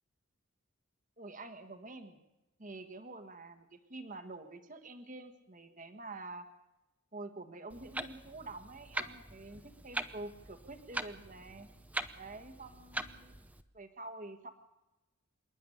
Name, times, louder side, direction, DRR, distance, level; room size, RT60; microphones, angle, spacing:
voice 1, 1.2-2.2 2.6-6.5 7.1-11.7 12.2-13.4 13.7-14.5, right 2 dB, 35° right, 7 dB, 1.5 m, -47 dB
Clock, 7.7-13.6, right 1 dB, 5° right, 0.8 m, -43 dB
26.5 x 11.0 x 10.0 m, 0.98 s
head